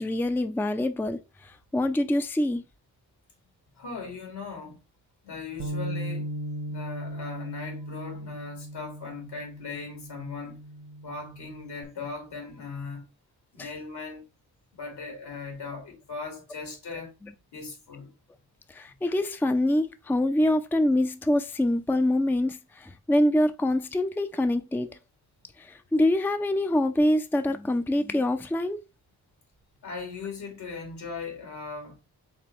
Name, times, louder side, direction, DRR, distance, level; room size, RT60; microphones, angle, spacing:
voice 1, 0.0-2.6 13.6-13.7 18.7-25.0 25.6-28.8, left 1 dB, 5° left, 0.5 m, -25 dB
voice 2, 3.8-4.8 5.2-6.4 6.7-10.6 11.0-13.1 13.5-14.2 14.7-17.1 17.5-18.1 29.8-32.0, left 4 dB, 75° left, 2.4 m, -38 dB
Bass guitar, 5.6-11.8, right 1 dB, 45° right, 0.9 m, -37 dB
4.5 x 3.4 x 3.1 m
supercardioid pair, 45°, 40 cm